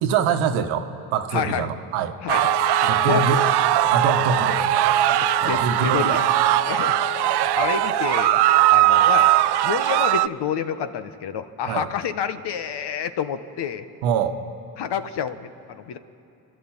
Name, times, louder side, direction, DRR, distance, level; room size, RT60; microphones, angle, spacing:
voice 1, 0.0-2.1 2.9-3.4 3.9-5.1 5.4-6.2 11.6-11.9 14.0-14.3, right 6 dB, 75° right, 7 dB, 1.5 m, -24 dB
voice 2, 1.3-1.7 2.2-2.5 2.8-3.2 5.2-6.3 6.6-7.0 7.6-8.4 8.7-9.3 9.6-13.8 14.8-16.0, left 8 dB, 55° left, 10 dB, 1.4 m, -28 dB
Wind instrument woodwind instrument, 2.3-9.7, left 12 dB, 75° left, 1.6 m, -34 dB
sound 1, 2.3-10.3, right 16 dB, 55° right, 0.6 m, -20 dB
30.0 x 12.0 x 9.1 m, 2.7 s
supercardioid pair, 75°, 48 cm